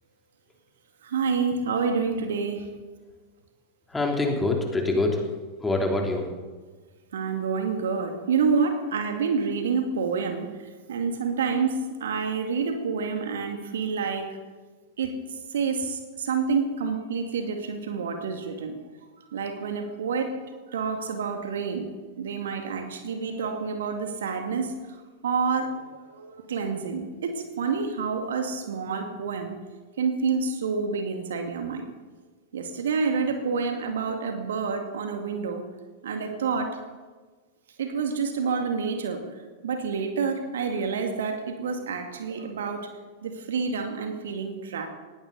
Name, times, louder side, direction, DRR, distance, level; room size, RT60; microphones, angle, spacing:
voice 1, 1.0-2.7 7.1-14.4 15.0-18.8 19.3-20.3 20.7-21.9 22.2-29.5 30.0-31.9 32.5-35.6 36.0-36.8 37.8-42.9 43.2-44.9, right 5 dB, 60° right, 5 dB, 2.1 m, -28 dB
voice 2, 3.9-5.3 5.6-6.3, left 2 dB, 10° left, 1 dB, 3.2 m, -25 dB
20.0 x 16.5 x 4.1 m, 1.3 s
figure-of-eight pair, 90°, 0 cm